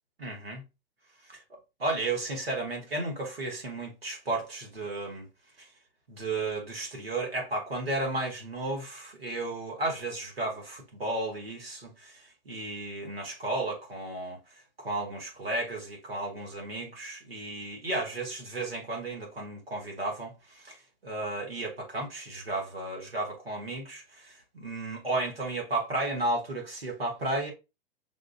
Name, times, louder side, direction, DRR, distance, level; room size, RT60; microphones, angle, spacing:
voice 1, 0.2-0.6 1.8-5.3 5.6-5.7 6.1-14.4 14.8-20.8 21.0-27.5, right 2 dB, 80° right, 1.5 m, -33 dB
5.9 x 2.5 x 2.3 m
figure-of-eight pair, 95°, 29 cm